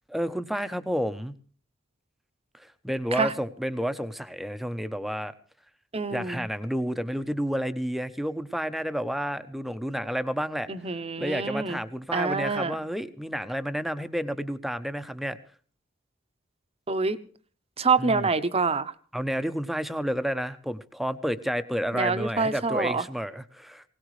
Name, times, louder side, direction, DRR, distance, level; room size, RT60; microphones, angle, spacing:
voice 1, 0.1-1.3 2.5-5.3 6.1-10.7 11.2-15.4 18.0-18.3 19.1-23.8, equal, ahead, 11 dB, 0.8 m, -30 dB
voice 2, 5.9-6.5 10.7-11.8 12.1-12.8 16.9-17.2 17.8-18.9 21.9-23.0, right 4 dB, 30° right, 11 dB, 0.9 m, -26 dB
20.5 x 18.0 x 3.2 m, 0.43 s
head